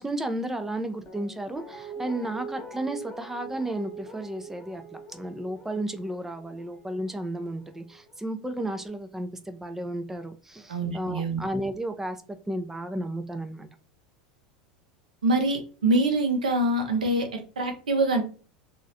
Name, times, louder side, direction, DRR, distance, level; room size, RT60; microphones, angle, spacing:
voice 1, 0.0-13.7, right 1 dB, 10° right, 8 dB, 0.5 m, -33 dB
Guitar, 1.0-8.1 8.4-8.5, right 3 dB, 20° left, 1.2 m, -43 dB
voice 2, 10.7-11.4 15.2-18.2, right 2 dB, 85° right, 5 dB, 0.7 m, -25 dB
3.0 x 2.5 x 2.7 m, 0.37 s
hypercardioid pair, 85°, 4 cm